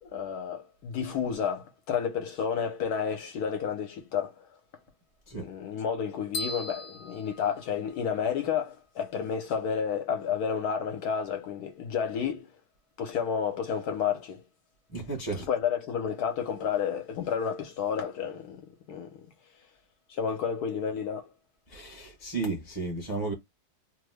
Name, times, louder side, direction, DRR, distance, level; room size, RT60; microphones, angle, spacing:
voice 1, 0.0-4.6 5.4-12.6 13.0-14.4 15.3-19.7 20.1-21.3, left 7 dB, 70° left, 1.1 m, -31 dB
sound 1, 6.3-8.3, left 2 dB, 90° left, 0.5 m, -38 dB
voice 2, 14.9-15.5 21.7-23.3, right 3 dB, 20° left, 0.7 m, -33 dB
3.1 x 2.0 x 3.3 m
omnidirectional pair, 1.9 m